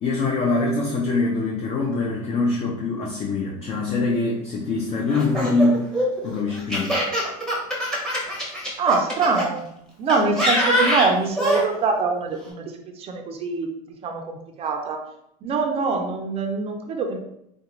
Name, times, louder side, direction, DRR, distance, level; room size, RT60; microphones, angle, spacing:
voice 1, 0.0-5.9 6.2-7.0, left 3 dB, 30° left, -1 dB, 0.5 m, -23 dB
Laughter, 5.1-9.5 10.1-11.6, equal, 5° left, 0.8 m, -23 dB
voice 2, 8.8-9.7 10.0-13.7 14.0-15.1 15.4-17.2, right 4 dB, 30° right, 4 dB, 0.4 m, -24 dB
3.4 x 2.5 x 3.0 m, 0.77 s
supercardioid pair, 130°, 20 cm